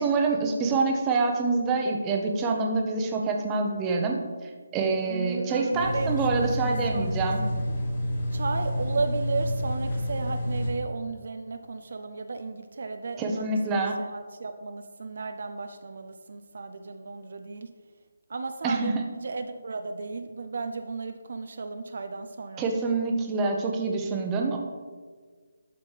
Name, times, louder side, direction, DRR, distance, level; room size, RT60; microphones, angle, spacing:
voice 1, 0.0-7.4 13.2-14.0 18.6-18.9 22.6-24.6, right 3 dB, 15° right, 1 dB, 0.8 m, -26 dB
voice 2, 5.1-7.8 8.3-17.7 18.3-22.6, right 4 dB, 60° right, 7 dB, 0.4 m, -34 dB
sound 1, 5.7-10.7, equal, 45° left, 1.3 m, -29 dB
12.0 x 4.1 x 3.3 m, 1.5 s
figure-of-eight pair, 160°, 0 cm